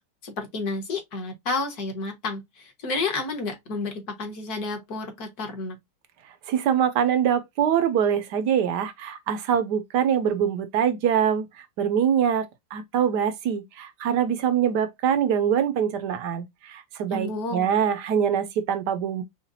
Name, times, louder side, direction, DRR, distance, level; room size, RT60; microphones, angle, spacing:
voice 1, 0.2-5.8 17.1-17.7, left 3 dB, 55° left, 1.8 m, -31 dB
voice 2, 6.5-12.5 12.7-19.2, right 8 dB, 70° right, 1.1 m, -24 dB
5.7 x 2.4 x 2.6 m
omnidirectional pair, 2.1 m